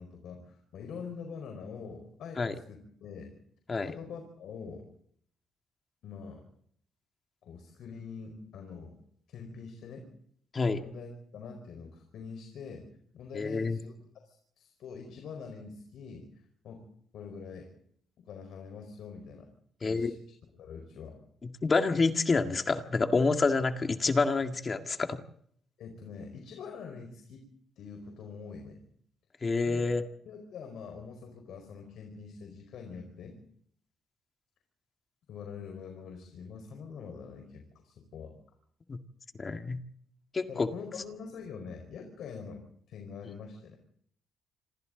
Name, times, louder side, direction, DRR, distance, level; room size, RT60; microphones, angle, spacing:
voice 1, 0.0-3.3 3.9-4.8 6.0-6.4 7.4-9.0 9.3-10.1 10.7-12.9 13.1-16.9 17.1-17.7 18.2-19.5 19.8-20.2 20.6-21.2 25.8-27.5 27.8-28.8 29.6-30.0 30.2-33.4 35.3-38.3 40.5-43.8, left 5 dB, 75° left, 4 dB, 4.8 m, -44 dB
voice 2, 13.3-13.8 19.8-20.1 21.6-25.2 29.4-30.0 38.9-39.0 39.4-39.8 40.3-40.7, left 4 dB, 35° left, 6 dB, 1.9 m, -27 dB
27.5 x 26.5 x 4.0 m, 0.65 s
cardioid pair, 90°, 0 cm